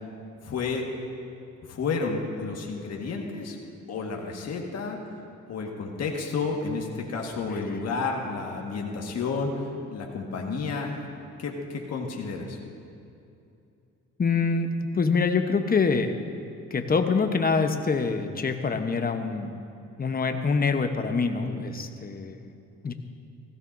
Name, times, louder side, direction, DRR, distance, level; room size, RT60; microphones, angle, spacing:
voice 1, 0.4-0.9 1.6-3.6 3.9-5.0 5.5-10.9 11.4-12.6, left 4 dB, 60° left, 0 dB, 1.7 m, -31 dB
voice 2, 14.2-16.1 16.7-19.6 20.0-22.4 22.8-22.9, left 4 dB, 30° left, 7 dB, 1.0 m, -25 dB
16.5 x 16.0 x 2.7 m, 2.6 s
cardioid pair, 90°, 30 cm